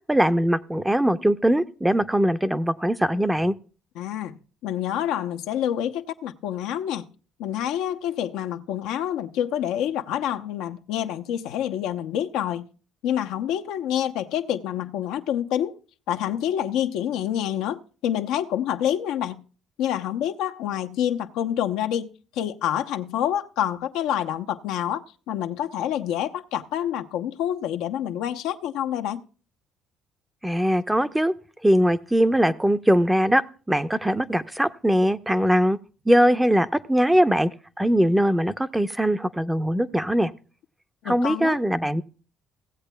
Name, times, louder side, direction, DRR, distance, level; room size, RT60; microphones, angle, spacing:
voice 1, 0.1-3.5 30.4-31.3 31.6-33.4 33.7-35.8 36.1-37.5 37.8-40.3 41.1-42.0, equal, 10° right, 0.6 m, -21 dB
voice 2, 4.0-4.4 4.6-7.0 7.4-12.6 13.0-15.8 16.1-19.4 19.8-22.1 22.3-29.2 41.0-41.6, left 10 dB, 80° left, 0.7 m, -27 dB
17.5 x 8.0 x 2.2 m
supercardioid pair, 70°, 0 cm